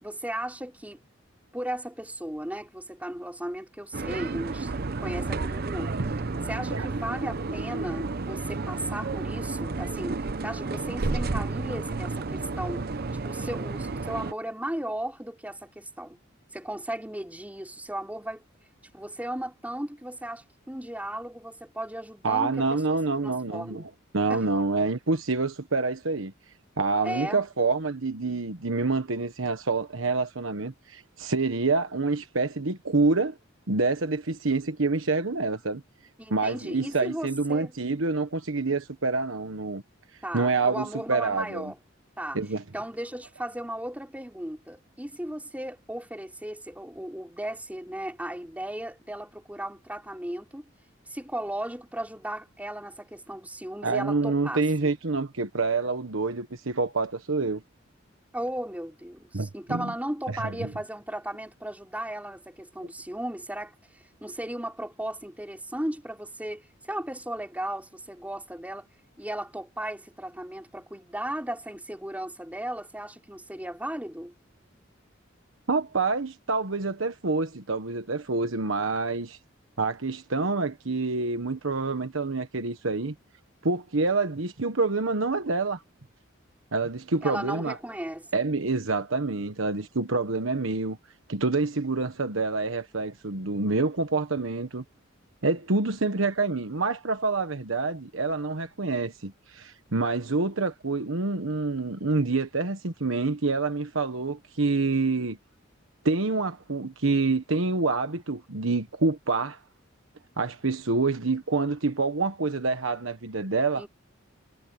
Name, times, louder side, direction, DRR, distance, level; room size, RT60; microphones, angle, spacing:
voice 1, 0.0-1.0 1.5-4.7 5.0-5.9 6.5-12.8 13.2-16.2 16.5-18.4 18.9-22.8 23.2-23.8 24.3-24.4 27.0-27.4 36.2-37.7 40.2-41.8 42.2-42.4 42.7-50.7 51.1-54.9 58.3-68.9 69.2-74.3 87.2-88.3 113.8-113.9, right 1 dB, 10° right, 5.3 m, -36 dB
sound 1, 3.9-14.3, right 3 dB, 50° right, 0.7 m, -31 dB
voice 2, 22.2-26.3 26.8-33.4 33.7-35.8 36.3-39.8 40.3-41.7 42.3-42.6 53.8-57.6 59.3-59.9 60.3-60.7 75.7-79.4 79.8-83.1 83.6-85.8 86.7-87.8 88.3-91.0 91.3-94.8 95.4-105.4 106.0-109.6 110.4-113.9, right 3 dB, 85° right, 1.3 m, -27 dB
head